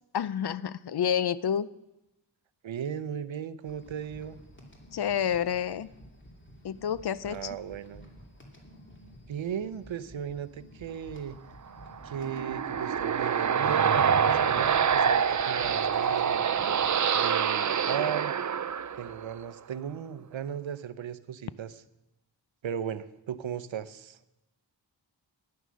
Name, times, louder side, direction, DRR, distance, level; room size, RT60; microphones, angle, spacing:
voice 1, 0.1-1.7 4.9-5.9 6.6-7.6, left 8 dB, 60° left, 18 dB, 0.5 m, -29 dB
voice 2, 2.6-4.4 7.3-8.0 9.3-11.4 12.0-16.4 17.1-18.3 19.0-21.8 22.6-24.2, right 8 dB, 90° right, 14 dB, 0.7 m, -36 dB
sound 1, 3.6-17.0, equal, 25° left, 2.7 m, -52 dB
sound 2, 11.9-19.4, right 7 dB, 40° right, 0.5 m, -26 dB
12.5 x 9.7 x 6.3 m, 0.93 s
wide cardioid pair, 80°, 45 cm